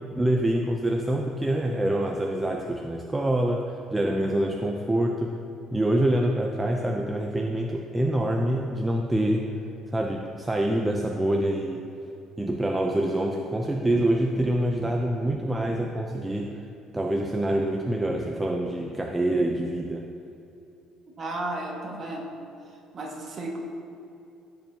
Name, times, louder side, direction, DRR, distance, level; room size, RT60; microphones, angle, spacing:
voice 1, 0.1-5.4 5.7-9.5 9.9-11.8 12.4-16.6 16.9-20.0, right 1 dB, 10° right, 1 dB, 0.5 m, -26 dB
voice 2, 21.2-22.3 22.6-23.6, right 2 dB, 35° right, -2 dB, 1.8 m, -34 dB
16.0 x 6.9 x 2.9 m, 2.7 s
cardioid pair, 130°, 0 cm